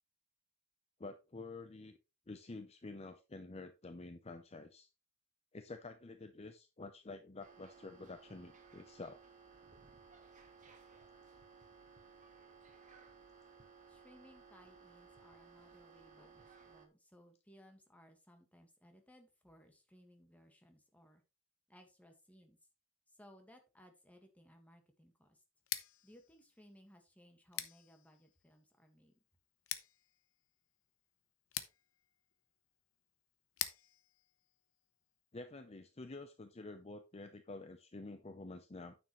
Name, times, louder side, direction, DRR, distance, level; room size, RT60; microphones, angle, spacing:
voice 1, 1.0-2.0 2.3-4.9 5.5-9.2 16.2-16.3 35.3-39.0, left 3 dB, 30° left, 8 dB, 0.6 m, -49 dB
sound 1, 7.4-16.9, right 5 dB, 35° right, 1.7 m, -60 dB
voice 2, 13.9-21.2 21.7-22.6 23.1-25.4 26.0-29.1, equal, 5° left, 4 dB, 1.6 m, -63 dB
Scissors, 25.6-35.4, left 12 dB, 70° left, 0.8 m, -48 dB
9.4 x 7.1 x 3.1 m, 0.28 s
head